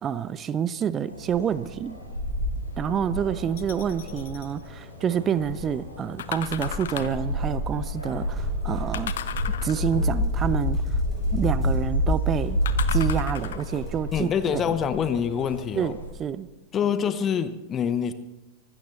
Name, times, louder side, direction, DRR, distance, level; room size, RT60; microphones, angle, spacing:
voice 1, 0.0-2.0 2.8-9.1 9.6-11.0 11.3-12.6 12.9-14.8 15.8-16.5, right 8 dB, 25° right, 17 dB, 0.6 m, -28 dB
sound 1, 1.1-16.1, equal, 85° left, 4.3 m, -29 dB
sound 2, 3.6-4.5 6.2-7.3 8.9-10.1 12.6-13.8 14.5-14.6, left 10 dB, 60° left, 0.9 m, -35 dB
sound 3, 8.1-14.3, right 3 dB, 10° right, 7.3 m, -44 dB
voice 2, 14.1-15.9 16.7-18.1, left 8 dB, 25° left, 12 dB, 0.9 m, -25 dB
24.5 x 13.0 x 4.1 m, 0.99 s
figure-of-eight pair, 90°, 0 cm